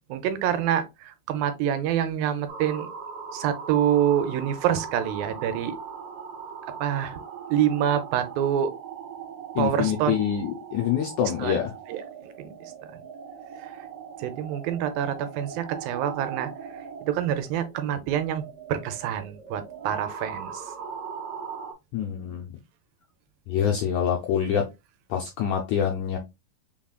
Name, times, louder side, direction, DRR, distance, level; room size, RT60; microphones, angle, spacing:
voice 1, 0.1-2.9 3.3-5.8 6.8-7.2 7.5-8.7 9.6-10.2 11.4-11.5 11.9-12.5 13.6-13.7 14.2-16.5 17.0-18.4 18.7-20.6, right 10 dB, 80° right, 2.4 m, -26 dB
sound 1, 2.5-21.7, right 6 dB, 50° right, 2.3 m, -40 dB
voice 2, 9.5-11.7 21.9-22.5 23.5-24.6 25.1-26.2, left 9 dB, 80° left, 1.7 m, -26 dB
5.8 x 3.6 x 2.3 m
omnidirectional pair, 4.2 m